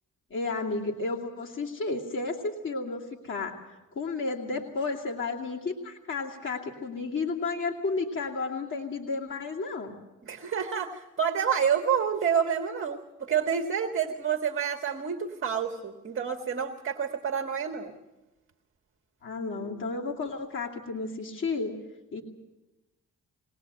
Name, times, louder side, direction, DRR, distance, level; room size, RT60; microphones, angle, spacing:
voice 1, 0.3-3.6 3.9-9.9 19.2-21.8 22.1-22.2, left 3 dB, 40° left, -2 dB, 2.6 m, -32 dB
voice 2, 10.2-17.9, right 7 dB, 40° right, 3 dB, 1.5 m, -28 dB
22.0 x 19.0 x 7.9 m, 1.0 s
cardioid pair, 130°, 31 cm